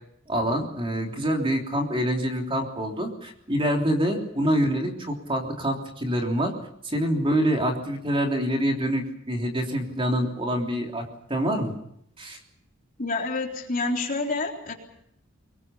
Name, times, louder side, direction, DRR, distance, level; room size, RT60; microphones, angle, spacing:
voice 1, 0.3-6.5 6.8-11.7 12.2-12.4, equal, 25° right, 2 dB, 3.3 m, -26 dB
voice 2, 13.0-14.7, left 3 dB, 40° left, 1 dB, 3.7 m, -28 dB
24.5 x 21.5 x 7.1 m, 0.75 s
head